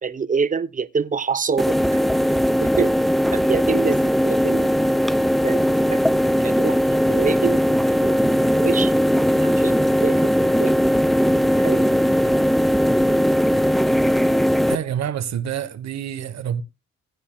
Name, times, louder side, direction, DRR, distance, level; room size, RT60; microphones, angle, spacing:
voice 1, 0.0-2.0 2.6-2.9 3.3-4.7 5.4-5.6 5.9-6.0 6.4-8.9 9.4-9.8 10.0-10.2 10.6-10.7 11.6-11.9, right 5 dB, 25° right, 0.8 m, -26 dB
sound 1, 1.6-14.8, equal, ahead, 0.5 m, -19 dB
voice 2, 14.6-16.6, right 9 dB, 60° right, 1.3 m, -27 dB
16.5 x 9.7 x 2.3 m
cardioid pair, 90°, 30 cm